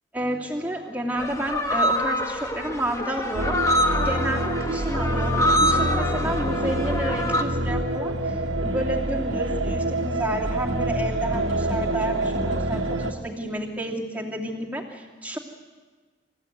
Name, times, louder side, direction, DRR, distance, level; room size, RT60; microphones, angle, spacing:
voice 1, 0.1-3.8 4.0-15.4, right 1 dB, 5° right, -2 dB, 2.7 m, -30 dB
sound 1, 1.2-7.4, left 1 dB, 15° left, 1.4 m, -25 dB
sound 2, 3.3-13.1, right 1 dB, 80° right, 1.8 m, -27 dB
sound 3, 5.3-13.1, left 1 dB, 50° left, 7.2 m, -36 dB
27.5 x 15.0 x 9.3 m, 1.4 s
head